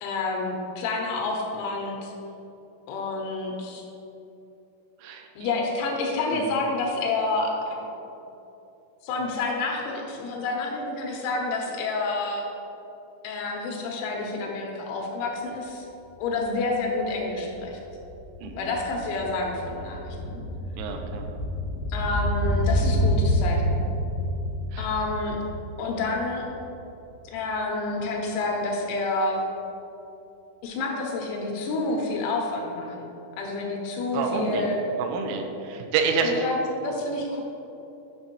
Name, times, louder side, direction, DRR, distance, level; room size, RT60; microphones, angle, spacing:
voice 1, 0.0-2.1 2.9-3.8 5.4-7.7 9.0-12.4 13.2-15.9 16.2-17.8 18.5-20.4 21.9-23.8 24.8-25.4 25.8-26.4 27.3-29.4 30.6-33.1 33.4-34.8 36.2-37.4, left 3 dB, 80° left, 0 dB, 3.1 m, -29 dB
voice 2, 5.0-5.5 6.3-6.6 18.4-18.7 20.8-21.3 24.7-24.9 34.1-34.7 35.0-36.5, right 5 dB, 85° right, 4 dB, 3.1 m, -28 dB
sound 1, 16.2-16.3 16.6-26.9 27.2-27.3, equal, 70° right, 2.4 m, -28 dB
8.7 x 5.4 x 3.0 m, 2.9 s
omnidirectional pair, 5.5 m